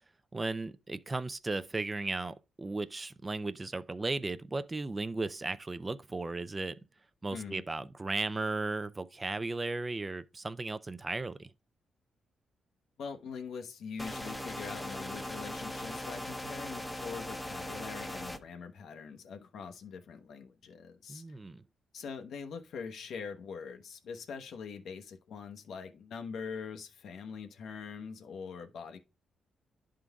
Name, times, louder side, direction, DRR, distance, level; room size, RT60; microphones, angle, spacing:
voice 1, 0.3-6.8 7.2-11.5 21.1-21.6, right 3 dB, 25° right, 0.4 m, -35 dB
voice 2, 7.3-7.6 13.0-21.4 21.9-29.0, left 6 dB, 75° left, 0.9 m, -43 dB
sound 1, 14.0-18.4, left 1 dB, 10° left, 0.7 m, -39 dB
10.5 x 3.8 x 3.5 m
cardioid pair, 85°, 0 cm